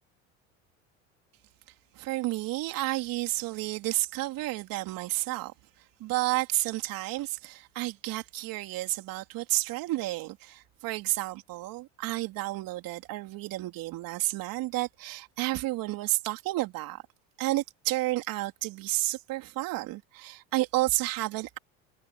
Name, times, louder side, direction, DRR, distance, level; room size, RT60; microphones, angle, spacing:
voice 1, 2.0-5.5 6.0-17.0 17.4-21.6, right 18 dB, 60° right, 3.5 m, -31 dB
hypercardioid pair, 85°, 38 cm